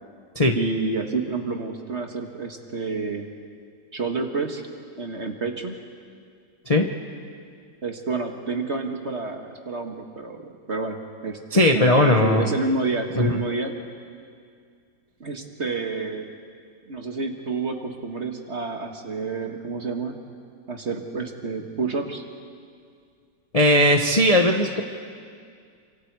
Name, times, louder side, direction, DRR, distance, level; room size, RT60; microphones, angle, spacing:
voice 1, 0.5-3.3 3.9-4.6 5.0-5.8 7.8-10.4 10.7-13.7 15.2-16.3 16.9-20.1 20.7-22.2, right 3 dB, 40° right, 4 dB, 1.7 m, -29 dB
voice 2, 11.5-12.5 13.2-13.4 23.5-24.8, left 1 dB, 25° left, 3 dB, 0.9 m, -18 dB
28.5 x 26.0 x 4.8 m, 2.2 s
omnidirectional pair, 2.0 m